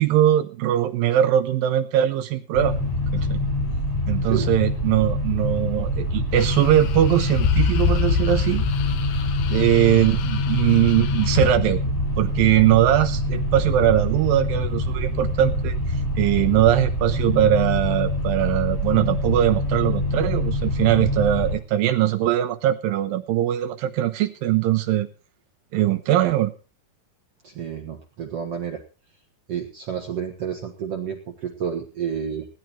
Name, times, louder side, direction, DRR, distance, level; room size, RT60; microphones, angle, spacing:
voice 1, 0.0-2.8 3.1-3.4 4.1-8.7 9.5-11.8 12.2-25.1 25.7-26.5, right 12 dB, 75° right, 7 dB, 2.3 m, -21 dB
sound 1, 2.5-21.6, left 1 dB, 5° left, 5.0 m, -25 dB
sound 2, 6.4-11.5, left 9 dB, 70° left, 2.4 m, -27 dB
voice 2, 27.4-28.8 29.5-32.5, right 8 dB, 55° right, 3 dB, 1.7 m, -30 dB
17.5 x 10.5 x 4.4 m, 0.35 s
omnidirectional pair, 4.5 m